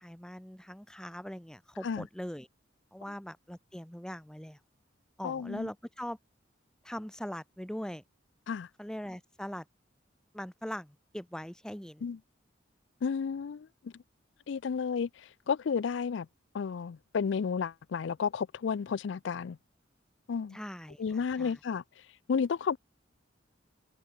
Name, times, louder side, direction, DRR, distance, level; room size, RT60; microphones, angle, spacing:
voice 1, 0.0-2.5 2.9-4.6 5.2-6.2 6.8-8.0 8.8-9.6 10.3-12.0 20.5-21.0 21.4-21.6, equal, 5° left, 0.6 m, -41 dB
voice 2, 5.2-5.7 8.5-8.7 12.0-12.2 13.0-13.9 14.5-16.3 16.5-19.6 20.3-20.6 21.0-21.8 22.3-22.8, left 6 dB, 65° left, 0.4 m, -32 dB
head